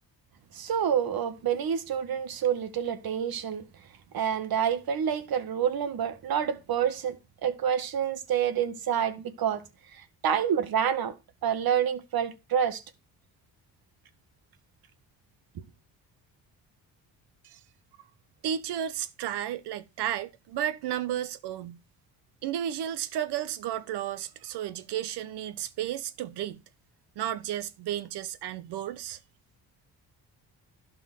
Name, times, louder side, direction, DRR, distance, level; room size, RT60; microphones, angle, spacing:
voice 1, 0.5-3.6 4.1-9.6 10.0-11.2 11.4-12.8, right 8 dB, 65° right, 1.7 m, -28 dB
voice 2, 18.4-21.8 22.4-26.6 27.2-29.2, right 11 dB, 85° right, 1.2 m, -33 dB
12.0 x 5.5 x 6.1 m
cardioid pair, 75°, 39 cm